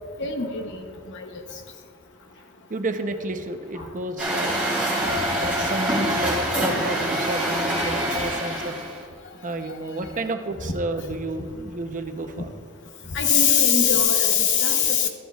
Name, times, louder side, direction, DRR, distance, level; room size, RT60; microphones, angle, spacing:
voice 1, 0.2-0.6 13.1-15.1, left 7 dB, 60° left, 4 dB, 0.9 m, -20 dB
voice 2, 2.7-4.6 5.3-8.8 9.4-12.5, right 2 dB, 40° right, 6 dB, 0.7 m, -31 dB
Truck, 4.2-9.0, right 1 dB, 5° right, 2.9 m, -25 dB
14.0 x 11.5 x 2.4 m, 2.1 s
head